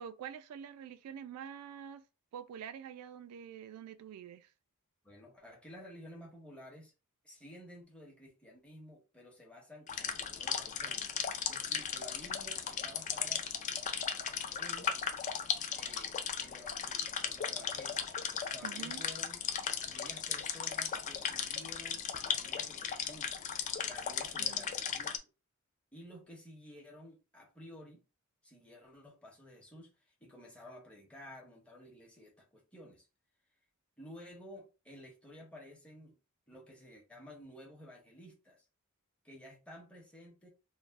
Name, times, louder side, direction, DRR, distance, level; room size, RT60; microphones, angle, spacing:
voice 1, 0.0-2.0 2.3-4.5 18.6-19.0 24.4-24.7, right 8 dB, 90° right, 0.3 m, -46 dB
voice 2, 5.0-6.9 7.2-11.1 11.5-13.5 14.6-15.0 15.7-19.4 19.8-23.4 23.8-25.1 25.9-28.0 28.4-29.9 30.2-33.1 34.0-36.2 36.5-38.6 39.2-40.5, left 1 dB, 5° left, 0.8 m, -53 dB
sound 1, 9.9-25.2, left 7 dB, 35° left, 0.3 m, -36 dB
3.2 x 2.1 x 2.5 m
head